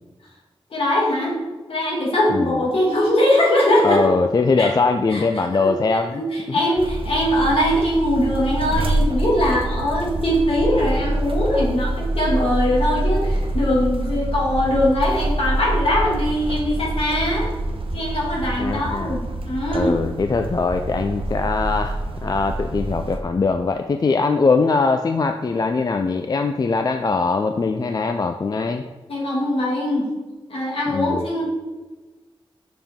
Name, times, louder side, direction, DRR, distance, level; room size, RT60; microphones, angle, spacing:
voice 1, 0.7-1.4 1.7-4.0 4.6-4.7 5.1-17.5 17.9-20.0 29.1-30.1 30.5-31.5, left 1 dB, 75° left, -5 dB, 2.2 m, -21 dB
voice 2, 3.8-6.6 18.6-19.2 19.7-28.8 30.9-31.3, left 4 dB, 40° left, 6 dB, 0.3 m, -21 dB
sound 1, 6.8-23.2, right 1 dB, 70° right, 0.7 m, -26 dB
6.9 x 5.6 x 3.6 m, 1.2 s
wide cardioid pair, 100°, 10 cm